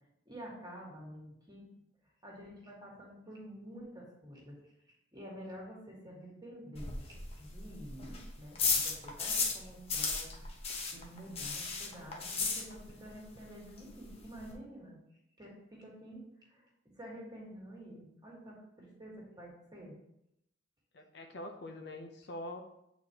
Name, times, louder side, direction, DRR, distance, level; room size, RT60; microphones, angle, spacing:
voice 1, 0.2-1.6 2.2-4.6 5.1-10.5 10.9-15.0 15.4-16.7 16.9-20.0, equal, 20° right, -3 dB, 1.6 m, -49 dB
sound 1, 6.7-9.6 9.9-13.1 13.3-13.4 13.8-13.9 14.0-14.5, left 4 dB, 30° left, 0.8 m, -34 dB
voice 2, 20.9-22.6, left 1 dB, 60° left, 5 dB, 0.6 m, -44 dB
8.0 x 4.1 x 2.9 m, 0.81 s
head